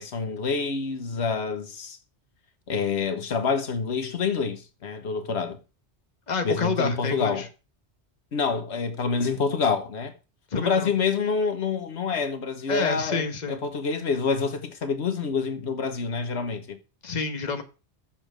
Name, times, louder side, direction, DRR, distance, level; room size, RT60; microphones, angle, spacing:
voice 1, 0.0-2.0 2.7-5.6 6.4-7.5 8.3-10.1 10.6-16.8, left 5 dB, 80° left, 1.4 m, -27 dB
voice 2, 6.3-7.5 10.5-10.9 12.7-13.6 17.0-17.6, left 4 dB, 40° left, 1.3 m, -28 dB
7.4 x 7.0 x 6.1 m
omnidirectional pair, 1.1 m